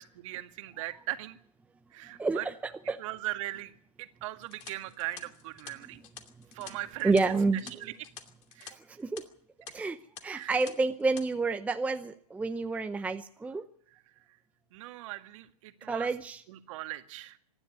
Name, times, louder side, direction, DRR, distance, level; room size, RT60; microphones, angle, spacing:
voice 1, 0.1-1.4 1.9-2.5 3.0-6.0 6.5-7.1 7.8-7.9 8.5-8.8 10.3-10.6 14.7-16.1 16.5-17.4, right 16 dB, 50° right, 8 dB, 1.9 m, -39 dB
voice 2, 2.2-2.5 2.9-3.0 7.0-7.6 8.9-9.2 9.7-13.6 15.9-16.4, right 3 dB, 5° right, 9 dB, 0.7 m, -29 dB
sound 1, 4.4-8.7 9.0-9.2 9.7-9.8 10.2-10.7 11.0-11.2, left 11 dB, 35° left, 2.6 m, -48 dB
25.0 x 10.5 x 9.8 m, 0.62 s
hypercardioid pair, 120°, 21 cm